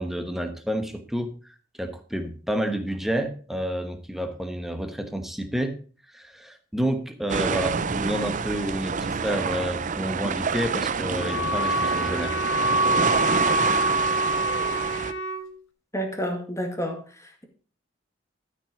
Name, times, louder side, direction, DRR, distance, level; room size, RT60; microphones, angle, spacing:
voice 1, 0.0-1.3 1.8-5.8 6.1-12.4, right 1 dB, ahead, 7 dB, 1.1 m, -29 dB
sound 1, 7.3-15.1, right 5 dB, 40° right, 0.6 m, -27 dB
Wind instrument woodwind instrument, 11.1-15.5, right 1 dB, 80° left, 1.5 m, -25 dB
voice 2, 15.9-17.0, equal, 15° left, 4 dB, 2.0 m, -29 dB
12.5 x 6.1 x 5.0 m, 0.39 s
head